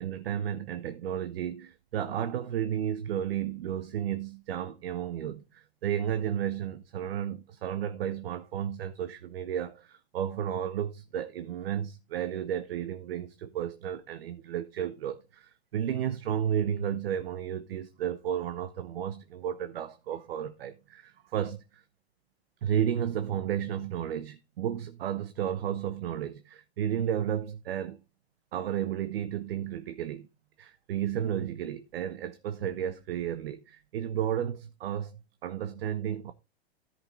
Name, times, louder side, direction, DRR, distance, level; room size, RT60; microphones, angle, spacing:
voice 1, 0.0-21.8 22.6-28.0 28.5-30.3 30.6-36.3, right 9 dB, 65° right, 1.1 m, -33 dB
13.5 x 5.9 x 4.0 m
hypercardioid pair, 105°, 32 cm